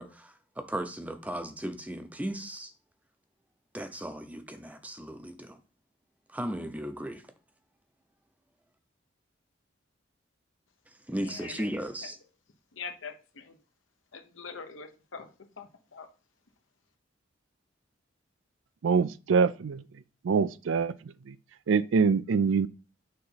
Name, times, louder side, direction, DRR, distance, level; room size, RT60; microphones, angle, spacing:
voice 1, 0.0-2.7 3.7-5.6 6.3-7.2 11.1-12.2, right 1 dB, 10° right, 0.6 m, -36 dB
voice 2, 11.2-11.6 12.0-12.1 12.7-13.6 14.1-16.1, left 5 dB, 85° left, 1.0 m, -44 dB
voice 3, 18.8-19.8 20.2-20.9 21.3-21.4 21.7-22.7, right 5 dB, 80° right, 0.4 m, -24 dB
6.6 x 3.0 x 5.5 m
head